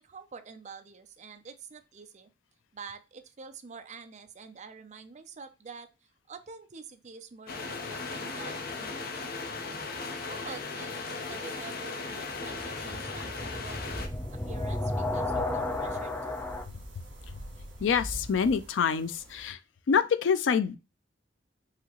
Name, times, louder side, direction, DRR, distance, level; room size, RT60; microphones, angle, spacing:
voice 1, 0.0-2.3 2.7-9.5 10.3-14.0 14.3-16.4, right 5 dB, 40° right, 0.6 m, -47 dB
sound 1, 7.5-14.1, left 4 dB, 55° left, 0.8 m, -37 dB
sound 2, 7.9-8.8 12.3-16.6, left 2 dB, 10° left, 0.4 m, -34 dB
sound 3, 13.9-19.5, equal, 85° right, 1.5 m, -45 dB
voice 2, 17.8-19.6 19.9-20.8, left 6 dB, 85° left, 0.4 m, -26 dB
4.8 x 2.9 x 2.9 m
head